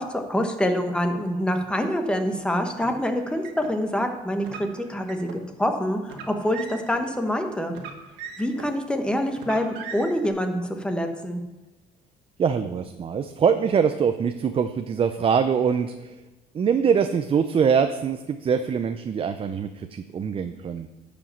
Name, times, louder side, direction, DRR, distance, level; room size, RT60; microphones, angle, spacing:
voice 1, 0.0-7.7 8.4-11.4, equal, 5° left, 5 dB, 1.2 m, -26 dB
Car, 2.7-3.7 4.4-5.4 6.0-7.0 7.7-8.8 9.3-10.3, right 6 dB, 85° right, 1.5 m, -40 dB
voice 2, 12.4-16.2 16.5-20.9, right 6 dB, 35° right, 8 dB, 0.5 m, -23 dB
10.5 x 5.2 x 7.1 m, 1.1 s
cardioid pair, 110°, 17 cm